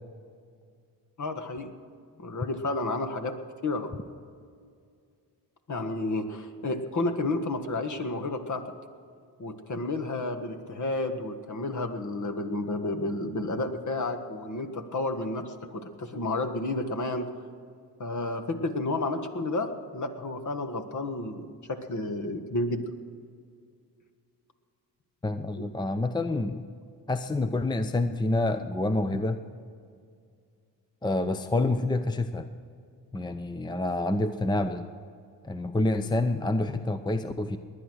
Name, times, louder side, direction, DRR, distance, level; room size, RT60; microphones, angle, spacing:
voice 1, 1.2-1.7 2.2-4.0 5.7-8.6 9.4-17.3 18.0-22.8 25.6-25.7, left 2 dB, 45° left, 7 dB, 1.7 m, -31 dB
voice 2, 25.2-26.7 27.1-29.4 31.0-32.5 33.1-34.9 35.4-37.6, left 2 dB, 10° left, 10 dB, 0.7 m, -27 dB
19.5 x 10.5 x 6.3 m, 2.2 s
cardioid pair, 75°, 41 cm